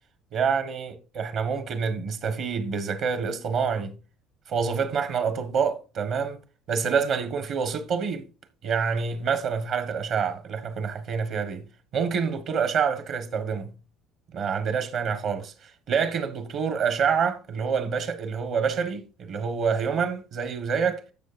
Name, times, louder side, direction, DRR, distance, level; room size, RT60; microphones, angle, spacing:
voice 1, 0.3-3.9 4.5-6.4 6.7-8.3 8.6-11.7 11.9-13.7 14.3-21.0, right 6 dB, 50° right, 1.3 m, -27 dB
12.5 x 7.5 x 2.5 m
cardioid pair, 140°, 0 cm